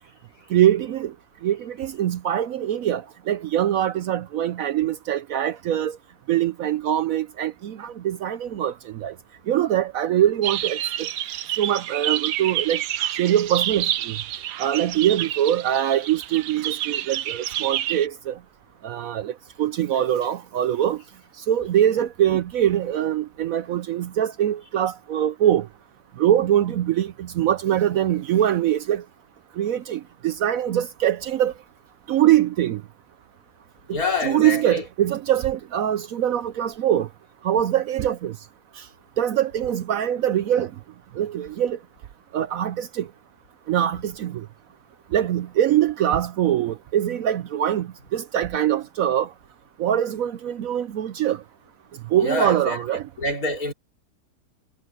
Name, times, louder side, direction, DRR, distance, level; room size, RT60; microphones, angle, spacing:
voice 1, 0.5-1.1 1.4-6.0 6.3-9.1 9.5-11.1 11.6-12.8 13.1-14.2 14.6-18.4 18.8-19.3 19.6-21.0 21.5-25.7 26.2-29.0 29.6-31.5 32.1-32.8 33.9-37.1 37.4-38.3 38.8-38.9 39.2-40.7 41.2-41.8 42.3-43.1 43.7-44.4 45.1-49.3 49.8-51.4 52.1-53.1, right 11 dB, 65° right, 0.9 m, -23 dB
sound 1, 10.4-18.1, right 12 dB, 85° right, 1.3 m, -28 dB
voice 2, 33.9-34.8 52.2-52.8 53.2-53.7, left 2 dB, 60° left, 4.0 m, -26 dB
omnidirectional pair, 1.7 m